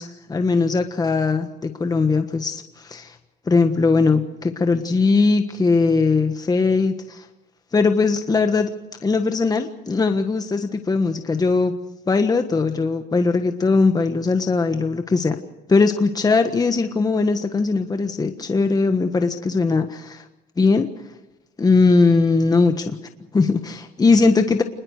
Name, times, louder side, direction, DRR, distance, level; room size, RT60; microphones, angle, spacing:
voice 1, 0.0-3.2 3.5-7.2 7.7-8.7 9.0-11.8 12.1-15.4 15.7-20.2 20.6-20.9 21.6-23.0 23.3-24.6, left 4 dB, 20° left, 7 dB, 1.4 m, -19 dB
26.0 x 21.0 x 6.6 m, 0.97 s
cardioid pair, 110°, 17 cm